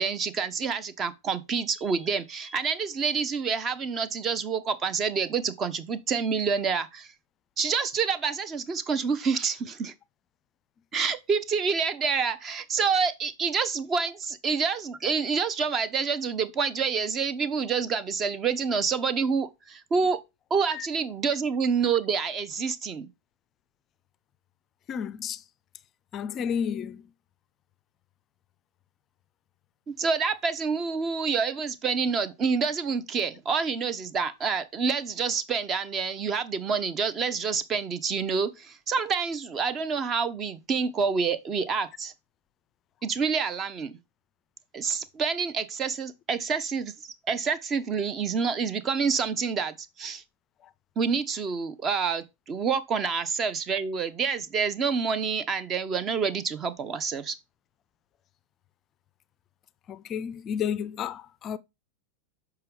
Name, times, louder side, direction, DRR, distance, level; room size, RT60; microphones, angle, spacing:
voice 1, 0.0-7.1 7.6-9.9 10.9-20.2 20.5-23.1 29.9-42.1 43.0-43.9 44.7-50.2 51.0-57.4, right 5 dB, 25° right, 0.6 m, -28 dB
voice 2, 24.9-25.4 26.1-27.0 59.9-61.6, left 8 dB, 30° left, 0.4 m, -31 dB
6.8 x 4.6 x 3.4 m
figure-of-eight pair, 90°, 0 cm